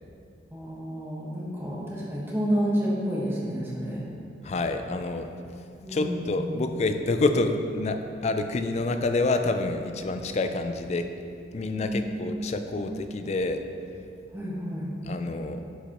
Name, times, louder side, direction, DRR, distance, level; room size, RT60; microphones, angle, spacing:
voice 1, 0.5-4.0 5.8-6.4 11.7-12.2 12.7-12.8 14.3-14.9, equal, 15° right, -6 dB, 1.4 m, -30 dB
voice 2, 4.4-5.3 5.9-11.1 11.5-13.6 15.0-15.6, left 2 dB, 40° left, 7 dB, 0.4 m, -27 dB
11.0 x 5.1 x 3.0 m, 2.5 s
head